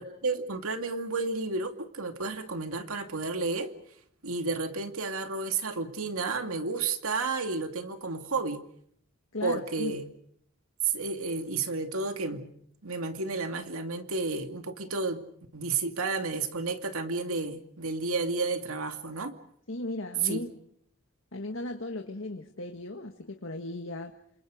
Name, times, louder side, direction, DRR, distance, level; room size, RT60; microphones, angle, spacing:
voice 1, 0.0-3.7 4.2-8.6 9.4-10.1 10.8-12.5 12.8-15.2 15.5-19.3 20.2-20.4, right 3 dB, 85° right, 6 dB, 2.4 m, -31 dB
voice 2, 9.3-9.9 19.7-20.5 21.3-24.1, left 2 dB, 65° left, 4 dB, 1.7 m, -36 dB
29.0 x 27.0 x 5.1 m, 0.68 s
head